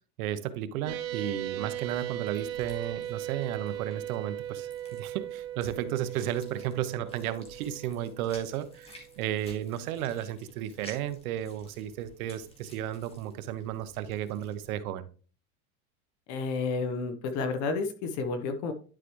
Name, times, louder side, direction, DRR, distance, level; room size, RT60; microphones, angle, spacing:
voice 1, 0.2-4.7 5.0-15.0, right 11 dB, 90° right, 12 dB, 1.0 m, -33 dB
sound 1, 0.8-14.7, left 1 dB, 15° left, 1.9 m, -55 dB
sound 2, 0.9-9.5, right 11 dB, 35° right, 0.9 m, -38 dB
voice 2, 16.3-18.7, left 4 dB, 45° left, 9 dB, 1.0 m, -31 dB
11.0 x 4.9 x 3.1 m, 0.38 s
supercardioid pair, 150°, 42 cm